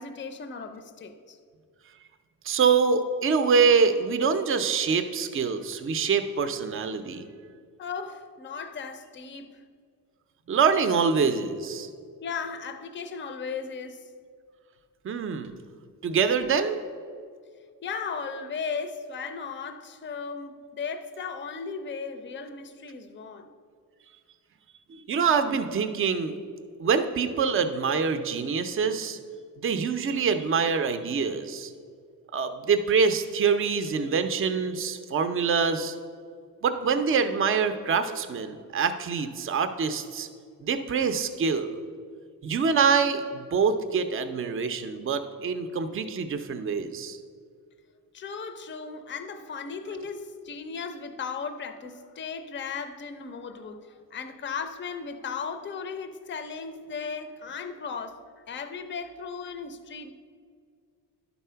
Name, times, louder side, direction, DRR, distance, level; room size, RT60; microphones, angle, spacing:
voice 1, 0.0-1.4 7.8-9.6 12.2-14.1 17.8-23.5 48.1-60.1, left 5 dB, 35° left, 8 dB, 0.5 m, -36 dB
voice 2, 2.4-7.3 10.5-11.9 15.0-15.5 16.0-16.8 24.9-26.3 26.8-29.2 29.6-31.7 32.3-35.9 36.6-40.3 40.6-41.8 42.4-47.2, right 5 dB, 35° right, 9 dB, 0.5 m, -25 dB
11.0 x 4.1 x 5.6 m, 2.1 s
wide cardioid pair, 170°, 36 cm